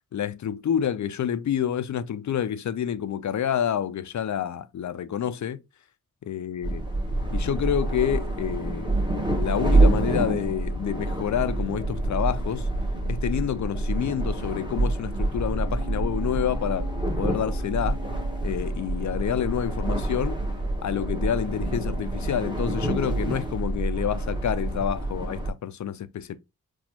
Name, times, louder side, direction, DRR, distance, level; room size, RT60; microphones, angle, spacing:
voice 1, 0.1-5.6 6.3-6.8 7.3-8.9 9.4-12.7 13.1-18.0 18.4-20.4 20.8-26.4, left 9 dB, 50° left, 0.4 m, -28 dB
sound 1, 6.6-25.5, right 2 dB, 10° right, 1.0 m, -27 dB
sound 2, 15.6-19.4 19.7-19.8, left 2 dB, 85° left, 0.9 m, -43 dB
4.1 x 2.4 x 2.8 m
cardioid pair, 55°, 37 cm